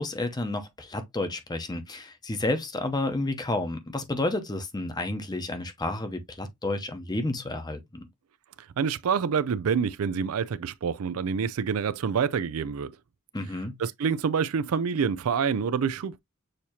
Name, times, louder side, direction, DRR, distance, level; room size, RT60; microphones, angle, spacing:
voice 1, 0.0-8.1 13.3-13.8, left 2 dB, 20° left, 0.7 m, -31 dB
voice 2, 8.8-12.9 13.8-16.2, right 6 dB, 80° right, 0.4 m, -27 dB
6.5 x 2.8 x 2.8 m
head